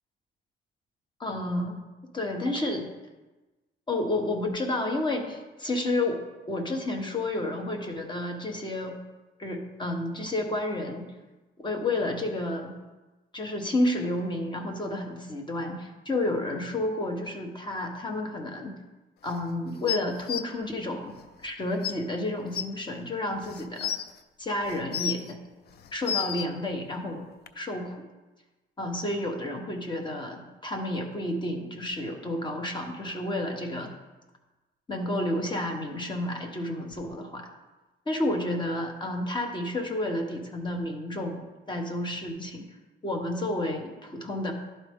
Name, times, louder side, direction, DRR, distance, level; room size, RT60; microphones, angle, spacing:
voice 1, 1.2-1.8 2.1-2.9 3.9-6.2 6.5-9.0 9.4-11.1 11.6-12.7 13.3-18.7 19.2-21.2 21.4-23.9 24.4-25.4 25.9-27.2 27.5-28.0 28.8-33.9 34.9-37.5 38.1-41.4 41.7-42.7 43.0-44.5, left 1 dB, 20° left, 3 dB, 1.0 m, -30 dB
sound 1, 19.9-20.4 21.4-21.5 21.8-21.9 22.5-22.6 23.4-24.0 24.7-25.3 25.8-26.5 27.5-27.6, left 9 dB, 50° left, 0.4 m, -30 dB
11.5 x 4.1 x 3.6 m, 1.1 s
cardioid pair, 125°, 21 cm